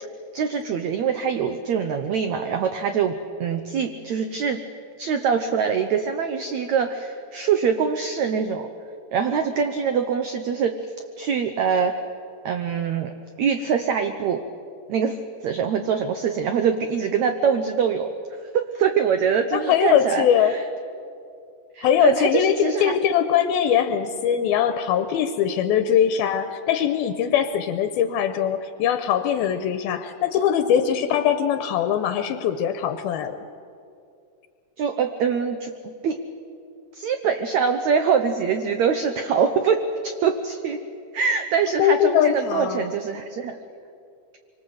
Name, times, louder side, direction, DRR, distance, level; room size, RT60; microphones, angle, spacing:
voice 1, 0.3-4.6 5.0-8.7 9.1-10.8 11.2-12.0 12.4-13.1 13.4-14.4 14.9-15.2 15.4-18.1 18.5-20.6 21.7-22.9 34.8-36.2 36.9-40.8 41.1-43.6, right 6 dB, 80° right, 7 dB, 1.6 m, -24 dB
voice 2, 19.5-20.5 21.8-33.4 41.8-42.9, left 9 dB, 80° left, 9 dB, 2.6 m, -21 dB
25.0 x 25.0 x 7.9 m, 2.5 s
omnidirectional pair, 4.6 m